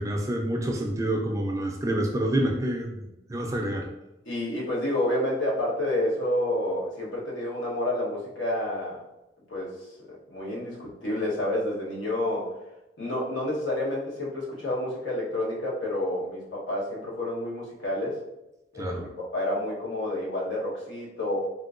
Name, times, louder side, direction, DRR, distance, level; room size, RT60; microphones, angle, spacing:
voice 1, 0.0-3.9 18.8-19.1, right 1 dB, 15° right, 1 dB, 0.3 m, -28 dB
voice 2, 4.3-9.0 9.5-12.5 13.0-18.2 18.7-21.4, left 1 dB, 90° left, -5 dB, 1.0 m, -29 dB
3.6 x 2.5 x 2.4 m, 0.93 s
head